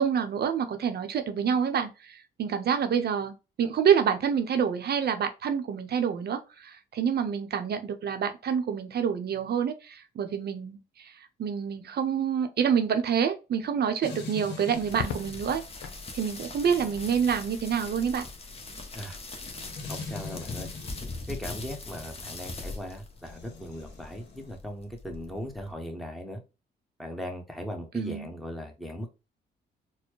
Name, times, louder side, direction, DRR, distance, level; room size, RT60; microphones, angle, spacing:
voice 1, 0.0-11.1 11.4-15.6 16.1-18.2 27.9-28.3, right 7 dB, 55° right, 0.7 m, -27 dB
sound 1, 14.0-21.3 23.2-24.6, left 4 dB, 60° left, 1.1 m, -44 dB
sound 2, 14.7-25.7, left 3 dB, 30° left, 1.0 m, -41 dB
Crackle, 14.9-16.1 17.7-18.2, left 6 dB, 90° left, 0.7 m, -38 dB
voice 2, 19.9-20.7 21.3-26.4 27.0-29.2, equal, ahead, 1.0 m, -38 dB
4.2 x 2.1 x 3.0 m
cardioid pair, 90°, 20 cm